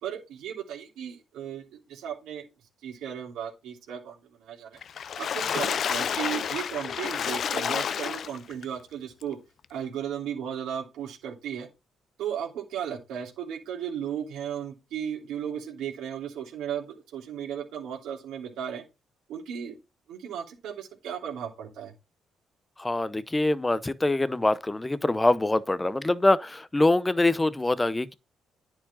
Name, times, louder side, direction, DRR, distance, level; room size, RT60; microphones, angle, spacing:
voice 1, 0.0-2.4 2.8-4.8 5.2-9.4 9.7-11.7 12.2-18.8 19.3-19.8 20.1-21.9, right 9 dB, 85° right, 2.9 m, -35 dB
Water / Splash splatter, 4.8-8.6 9.2-9.3 9.6-9.7, left 8 dB, 60° left, 0.5 m, -29 dB
voice 2, 22.8-28.1, left 2 dB, 15° left, 0.7 m, -24 dB
9.7 x 6.3 x 4.1 m
cardioid pair, 90°, 0 cm